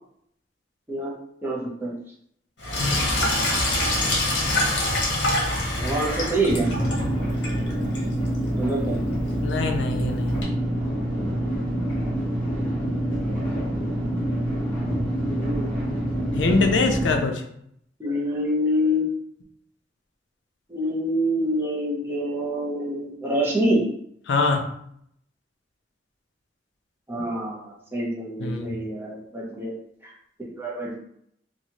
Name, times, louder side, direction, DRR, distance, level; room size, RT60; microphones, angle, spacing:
voice 1, 1.4-1.9 5.8-6.7 8.6-9.0 15.2-15.7 18.0-19.1 20.7-23.8 27.1-29.7 30.0-30.1 30.5-30.9, equal, 15° right, -4 dB, 0.7 m, -26 dB
Sink (filling or washing), 2.6-10.4, left 1 dB, 70° left, 0.9 m, -26 dB
sound 1, 6.5-17.2, right 1 dB, 10° left, 1.0 m, -26 dB
voice 2, 9.4-10.4 16.3-17.4 24.3-24.7 28.4-28.8, left 3 dB, 90° left, 4 dB, 0.4 m, -23 dB
3.0 x 2.3 x 2.8 m, 0.70 s
head